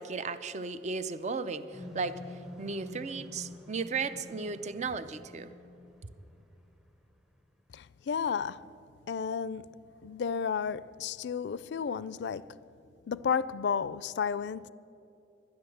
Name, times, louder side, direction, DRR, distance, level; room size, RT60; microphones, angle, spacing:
voice 1, 0.0-5.5, right 4 dB, 40° right, 0.5 m, -35 dB
sound 1, 1.7-7.0, left 2 dB, 5° right, 0.7 m, -48 dB
voice 2, 7.7-8.7 9.1-9.7 10.0-12.6 13.1-14.7, left 6 dB, 70° left, 0.4 m, -32 dB
12.5 x 10.5 x 7.7 m
head